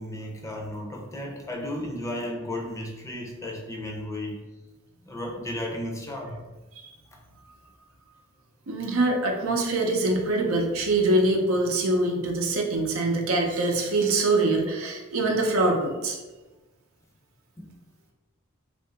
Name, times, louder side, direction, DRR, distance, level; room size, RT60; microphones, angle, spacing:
voice 1, 0.0-4.4 5.0-6.3 17.6-17.7, left 1 dB, 15° left, 0 dB, 0.5 m, -34 dB
voice 2, 8.7-16.2, right 2 dB, 85° right, 1 dB, 0.6 m, -24 dB
2.8 x 2.5 x 3.4 m, 1.2 s
head